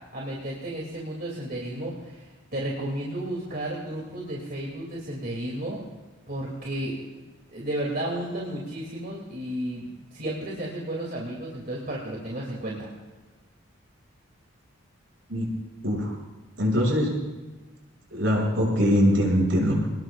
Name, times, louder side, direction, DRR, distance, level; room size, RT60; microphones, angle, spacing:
voice 1, 0.1-2.3 2.5-5.8 6.3-7.0 7.5-12.9, right 1 dB, 45° right, -3 dB, 2.9 m, -33 dB
voice 2, 15.8-16.1 16.6-17.1 18.1-19.8, equal, 65° right, -2 dB, 6.9 m, -22 dB
26.0 x 20.0 x 2.5 m, 1.2 s
head